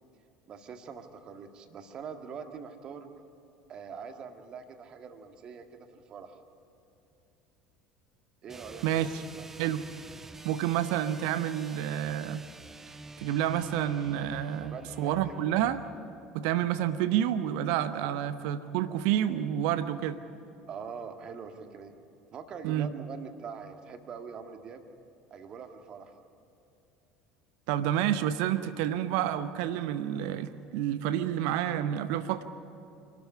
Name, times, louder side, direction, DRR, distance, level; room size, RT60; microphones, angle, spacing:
voice 1, 0.5-3.1 3.7-6.4 8.4-9.8 14.7-15.6 18.1-18.2 20.7-21.9 22.3-24.9 25.3-26.2, right 6 dB, 40° right, 5 dB, 2.0 m, -44 dB
sound 1, 8.5-16.0, right 2 dB, 15° right, 0.8 m, -47 dB
voice 2, 10.4-12.5 13.2-15.8 16.3-20.2 22.6-22.9 27.7-32.4, right 11 dB, 60° right, 12 dB, 0.8 m, -29 dB
26.5 x 13.0 x 9.9 m, 2.8 s
figure-of-eight pair, 65°, 2 cm